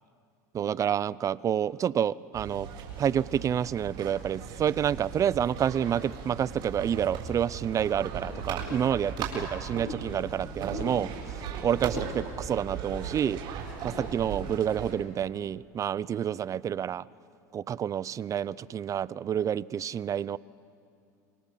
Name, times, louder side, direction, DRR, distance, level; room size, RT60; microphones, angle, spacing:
voice 1, 0.5-2.7 3.0-13.4 13.8-17.0 17.5-20.4, right 9 dB, 35° right, 20 dB, 0.6 m, -29 dB
sound 1, 2.3-14.9, right 5 dB, 55° right, 7.2 m, -37 dB
28.5 x 23.5 x 7.6 m, 2.6 s
hypercardioid pair, 90°, 10 cm